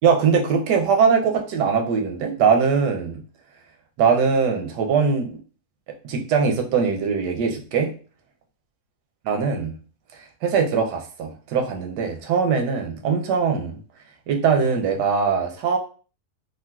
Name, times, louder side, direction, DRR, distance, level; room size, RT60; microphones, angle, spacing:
voice 1, 0.0-3.2 4.0-5.4 6.0-7.9 9.2-9.7 10.4-13.8 14.3-15.8, right 6 dB, 90° right, 3 dB, 1.2 m, -21 dB
3.7 x 2.4 x 2.3 m, 0.39 s
omnidirectional pair, 1.7 m